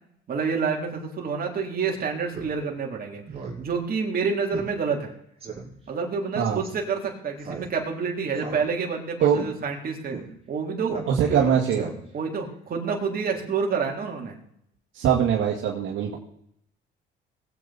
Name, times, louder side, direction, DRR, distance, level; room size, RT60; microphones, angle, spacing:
voice 1, 0.3-3.2 3.6-5.1 5.9-10.1 10.5-11.5 12.1-14.4, right 5 dB, 45° right, 0 dB, 3.7 m, -28 dB
Speech synthesizer, 2.3-2.5 2.9-3.0 3.3-3.6 3.9-4.0 4.5-4.7 5.0-5.1 5.4-5.7 6.4-6.7 7.4-8.0 8.3-8.9 9.3-9.5 10.1-10.2 10.9-11.4 11.7-12.2, right 5 dB, 30° right, 4.3 m, -36 dB
voice 2, 11.1-11.9 14.9-16.2, right 8 dB, 70° right, -1 dB, 2.2 m, -22 dB
20.5 x 8.5 x 4.3 m, 0.72 s
cardioid pair, 95°, 20 cm